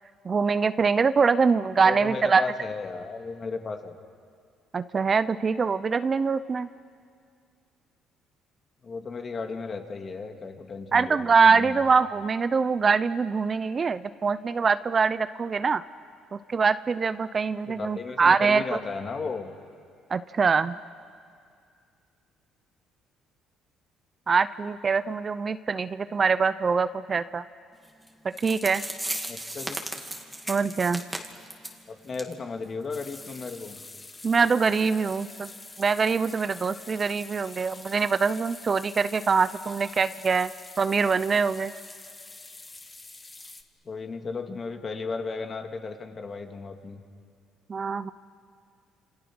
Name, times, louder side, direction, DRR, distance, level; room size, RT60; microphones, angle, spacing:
voice 1, 0.2-2.4 4.7-6.7 10.9-15.8 16.3-18.6 20.1-20.8 24.3-27.4 28.4-28.8 30.5-31.0 34.2-35.5 35.8-40.5 40.8-41.7 47.7-48.1, right 5 dB, 35° right, 14 dB, 0.6 m, -24 dB
voice 2, 1.8-4.0 8.8-11.8 17.7-19.5 29.3-29.8 31.9-33.8 43.8-47.0, left 4 dB, 40° left, 4 dB, 2.4 m, -35 dB
sound 1, 28.1-28.2 28.4-31.8 32.1-32.3 32.6-32.7 33.2-33.3, right 1 dB, 5° right, 2.4 m, -35 dB
sound 2, 32.9-43.6, left 3 dB, 20° left, 1.6 m, -46 dB
30.0 x 27.5 x 6.2 m, 2.2 s
cardioid pair, 90°, 0 cm